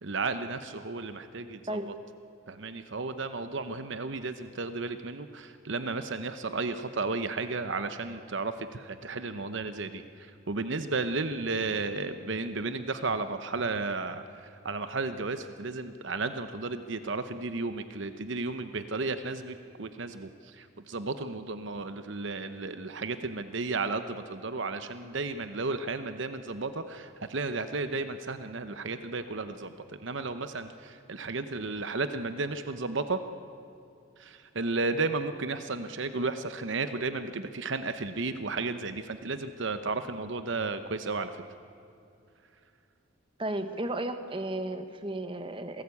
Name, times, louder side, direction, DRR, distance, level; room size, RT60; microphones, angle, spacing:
voice 1, 0.0-1.8 2.5-33.2 34.2-41.4, right 3 dB, 60° right, 10 dB, 0.9 m, -33 dB
voice 2, 43.4-45.8, right 1 dB, 25° right, 8 dB, 1.2 m, -34 dB
26.5 x 18.5 x 8.4 m, 2.6 s
head